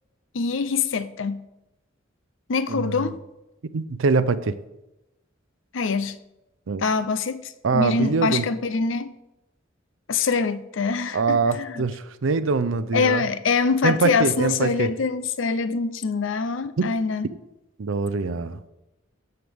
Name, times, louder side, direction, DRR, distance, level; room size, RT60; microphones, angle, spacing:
voice 1, 0.3-1.4 2.5-3.2 5.7-6.2 6.8-9.1 10.1-11.8 12.9-17.3, left 5 dB, 70° left, 0.6 m, -24 dB
voice 2, 2.7-3.2 3.7-4.6 6.7-6.8 7.6-8.5 11.1-13.3 13.8-15.0 16.8-16.9 17.8-18.6, right 4 dB, 80° right, 0.5 m, -23 dB
13.5 x 7.9 x 3.5 m
head